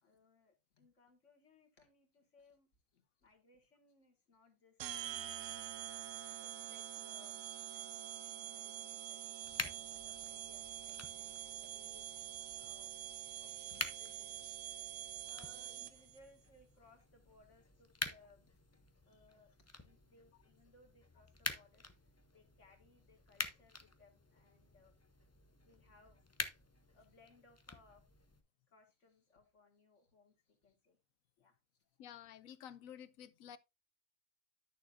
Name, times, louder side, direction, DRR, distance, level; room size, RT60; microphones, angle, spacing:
voice 1, 0.0-12.1 12.5-14.6 15.0-18.5 19.1-24.9 25.6-26.4 26.9-28.0 28.7-31.0 31.4-31.8, left 3 dB, 65° left, 2.2 m, -67 dB
sound 1, 4.8-16.2, right 12 dB, 75° right, 1.0 m, -46 dB
sound 2, 9.4-28.4, left 2 dB, 20° left, 0.4 m, -48 dB
voice 2, 32.0-33.6, left 9 dB, 85° left, 1.0 m, -52 dB
11.5 x 6.6 x 2.5 m
omnidirectional pair, 1.4 m